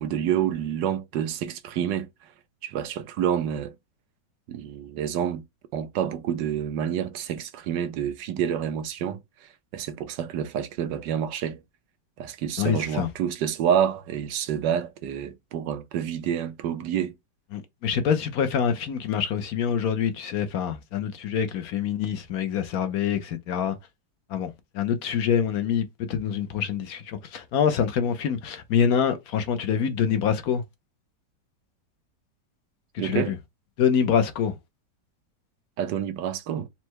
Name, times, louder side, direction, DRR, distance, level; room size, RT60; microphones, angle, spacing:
voice 1, 0.0-2.1 2.6-3.7 4.5-5.4 5.7-11.6 12.2-17.1 33.0-33.3 35.8-36.7, right 9 dB, 85° right, 1.4 m, -28 dB
voice 2, 12.6-13.1 17.5-23.8 24.3-30.6 32.9-33.4 33.8-34.5, left 8 dB, 65° left, 1.0 m, -25 dB
4.2 x 2.1 x 4.5 m
omnidirectional pair, 1.9 m